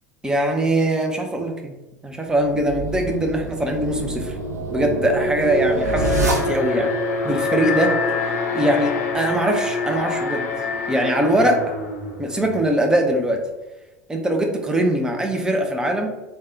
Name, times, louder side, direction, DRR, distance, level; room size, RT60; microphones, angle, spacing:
voice 1, 0.2-1.8 2.0-4.4 4.7-7.0 7.2-10.5 10.9-11.6 12.2-13.4 14.1-16.1, right 1 dB, 10° right, 3 dB, 0.5 m, -22 dB
sound 1, 2.4-7.0, right 3 dB, 80° right, 0.5 m, -26 dB
Alarm, 5.8-12.9, left 4 dB, 65° left, 0.5 m, -25 dB
3.3 x 2.1 x 2.6 m, 1.1 s
figure-of-eight pair, 75°, 9 cm